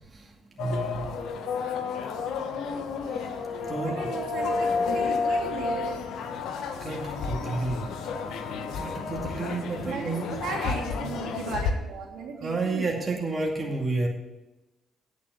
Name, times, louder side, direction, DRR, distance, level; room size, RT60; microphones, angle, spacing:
sound 1, 0.6-11.7, left 4 dB, 80° left, 1.2 m, -31 dB
voice 1, 0.6-1.2 3.7-4.1 6.8-7.8 8.8-10.3 12.4-14.1, right 3 dB, 30° right, -1 dB, 2.3 m, -30 dB
voice 2, 3.8-5.7 9.8-13.3, right 5 dB, 75° right, -2 dB, 3.0 m, -37 dB
8.9 x 8.3 x 7.9 m, 1.0 s
cardioid pair, 90°, 0 cm